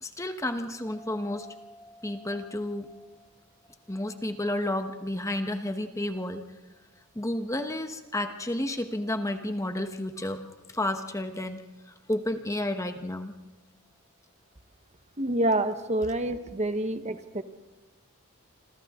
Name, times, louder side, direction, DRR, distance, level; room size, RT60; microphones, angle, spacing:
voice 1, 0.0-3.0 3.9-6.4 7.1-11.6 12.1-13.3, left 1 dB, 15° left, 7 dB, 1.0 m, -31 dB
voice 2, 15.2-17.4, right 1 dB, 30° right, 9 dB, 1.0 m, -27 dB
27.0 x 26.5 x 3.7 m, 1.2 s
head